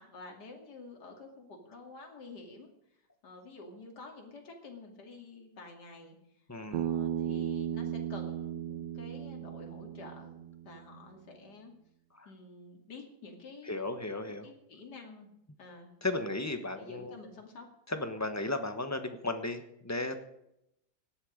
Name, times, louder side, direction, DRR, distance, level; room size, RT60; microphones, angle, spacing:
voice 1, 0.0-2.7 3.2-6.2 6.7-10.4 10.6-11.7 12.2-13.9 14.4-15.3 15.6-15.9 16.7-17.7, left 3 dB, 60° left, 2 dB, 3.1 m, -49 dB
voice 2, 6.5-6.9 12.1-12.3 13.6-14.5 16.0-17.2 17.9-20.2, left 2 dB, 10° left, 7 dB, 1.1 m, -35 dB
Bass guitar, 6.7-11.0, right 10 dB, 80° right, 1.4 m, -36 dB
17.5 x 12.0 x 5.2 m, 0.80 s
omnidirectional pair, 2.0 m